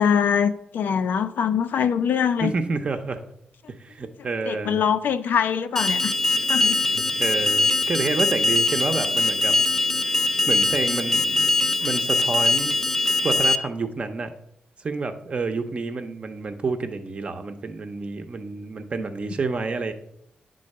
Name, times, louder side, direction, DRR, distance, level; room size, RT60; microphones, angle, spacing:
voice 1, 0.0-2.5 4.2-6.1 6.5-6.8, left 7 dB, 80° left, 10 dB, 0.5 m, -23 dB
voice 2, 2.4-3.2 3.8-4.8 6.8-9.6 10.0-11.5 11.8-12.8 13.2-14.3 14.8-19.9, right 4 dB, 40° right, 7 dB, 0.8 m, -29 dB
Alarm, 5.8-13.6, left 2 dB, 10° left, 0.4 m, -22 dB
9.8 x 3.9 x 6.5 m, 0.74 s
wide cardioid pair, 140°, 3 cm